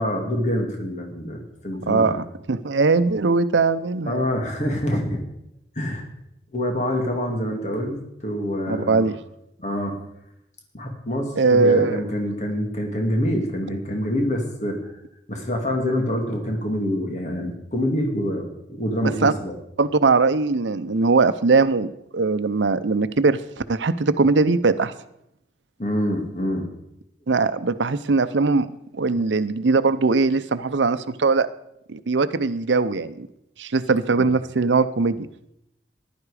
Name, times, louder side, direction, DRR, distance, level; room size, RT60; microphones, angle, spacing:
voice 1, 0.0-2.2 4.1-5.2 5.8-6.1 6.5-9.1 9.6-10.0 10.7-14.9 15.3-19.5 25.8-26.7 34.2-34.3, equal, 40° left, 2 dB, 2.2 m, -26 dB
voice 2, 1.9-4.2 8.7-9.2 11.4-12.0 19.2-19.3 19.8-23.4 23.7-24.9 27.3-28.7 28.9-31.5 31.9-33.3 33.6-35.3, right 4 dB, 85° right, 13 dB, 0.6 m, -20 dB
15.0 x 11.0 x 4.9 m, 0.80 s
head